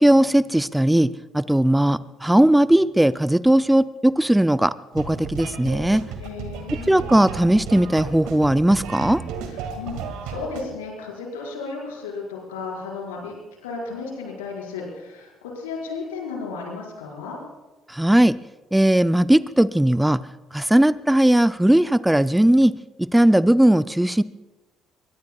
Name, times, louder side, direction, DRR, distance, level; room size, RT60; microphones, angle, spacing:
voice 1, 0.0-6.0 6.9-9.2 17.9-18.4 18.7-20.2 20.5-22.7 23.0-24.2, right 1 dB, 5° right, 15 dB, 0.5 m, -18 dB
sound 1, 4.9-10.6, right 6 dB, 70° right, 2.1 m, -34 dB
voice 2, 6.2-7.0 9.5-13.3 13.6-17.4, left 4 dB, 85° left, -1 dB, 4.9 m, -34 dB
23.0 x 22.0 x 2.3 m, 1.1 s
hypercardioid pair, 55°, 0 cm